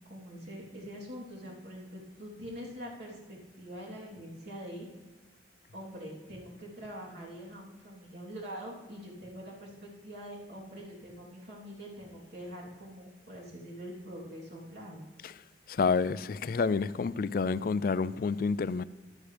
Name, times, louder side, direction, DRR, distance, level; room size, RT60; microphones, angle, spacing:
voice 1, 0.0-4.9 5.7-15.0, equal, 60° right, 3.2 m, -44 dB
voice 2, 15.7-18.8, left 4 dB, 50° left, 0.3 m, -29 dB
14.5 x 11.5 x 3.4 m
head